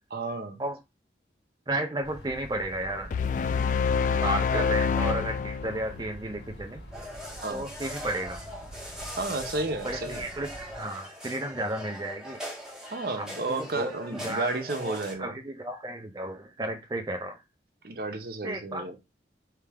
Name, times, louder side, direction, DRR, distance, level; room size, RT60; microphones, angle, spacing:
voice 1, 0.1-0.6 3.9-4.2 4.5-4.7 7.4-7.7 9.2-10.2 12.9-15.4 17.8-19.0, right 2 dB, 55° right, 0.8 m, -32 dB
voice 2, 1.7-3.1 4.2-6.8 7.5-8.4 9.8-10.5 10.7-12.4 13.2-17.4 18.4-19.0, right 1 dB, 20° right, 0.5 m, -33 dB
sound 1, 2.0-10.8, equal, 70° left, 1.5 m, -46 dB
sound 2, 3.1-6.4, left 6 dB, 45° left, 0.3 m, -26 dB
sound 3, 6.9-15.1, equal, 5° right, 1.3 m, -41 dB
3.4 x 3.3 x 4.7 m
head